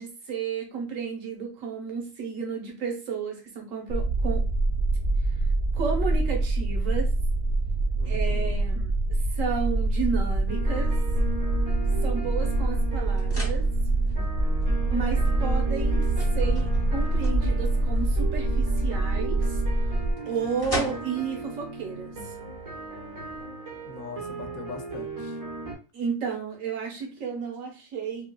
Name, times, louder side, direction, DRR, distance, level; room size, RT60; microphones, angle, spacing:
voice 1, 0.0-4.4 5.7-7.1 8.0-9.0 9.4-11.0 12.0-13.6 14.9-16.1 16.3-19.6 20.2-22.1 25.9-28.3, right 5 dB, 75° right, 1.3 m, -32 dB
sound 1, 3.9-20.1, right 2 dB, 55° right, 0.7 m, -25 dB
voice 2, 8.0-8.6 23.8-25.4, left 5 dB, 85° left, 1.0 m, -41 dB
sound 2, 10.5-23.4, equal, 20° left, 0.8 m, -42 dB
sound 3, 10.5-25.8, right 2 dB, 90° right, 1.6 m, -37 dB
3.7 x 2.3 x 2.3 m
omnidirectional pair, 1.4 m